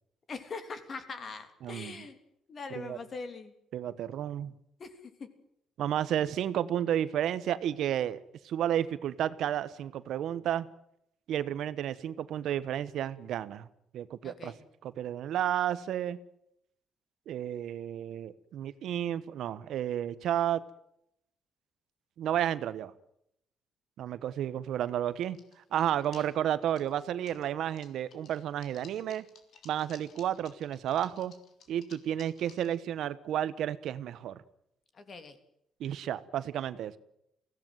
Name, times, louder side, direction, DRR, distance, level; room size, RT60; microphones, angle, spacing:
voice 1, 0.3-2.2 2.5-3.5 4.8-4.9 5.2-5.3 14.2-14.6 26.1-26.3 34.9-35.4, left 4 dB, 35° left, 9 dB, 3.1 m, -42 dB
voice 2, 1.6-2.1 2.7-3.0 3.7-4.5 5.8-10.7 11.3-13.7 13.9-14.5 14.8-16.2 17.3-20.6 22.2-22.9 24.0-25.4 25.7-29.2 29.6-31.3 31.7-34.4 35.8-37.0, right 11 dB, 70° right, 15 dB, 1.1 m, -32 dB
sound 1, 25.1-25.7 26.0-27.5 27.8-32.7, left 6 dB, 55° left, 3.5 m, -57 dB
22.5 x 17.0 x 9.3 m, 0.78 s
cardioid pair, 155°, 0 cm